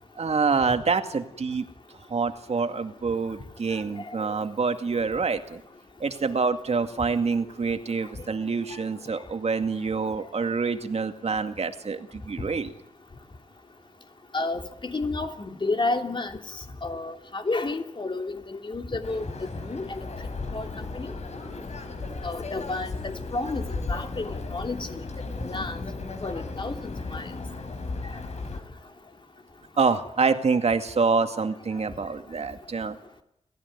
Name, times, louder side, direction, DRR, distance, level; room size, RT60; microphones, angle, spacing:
voice 1, 0.2-1.7 2.1-5.6 6.0-12.7 29.8-33.0, right 4 dB, 60° right, 7 dB, 2.2 m, -26 dB
voice 2, 14.3-16.4 16.8-20.1 20.5-21.1 22.2-25.0 25.4-25.8 26.2-27.3, left 3 dB, 40° left, 4 dB, 3.2 m, -31 dB
sound 1, 19.0-28.6, left 3 dB, 65° left, 4.4 m, -35 dB
29.5 x 15.0 x 9.7 m, 0.83 s
cardioid pair, 75°, 12 cm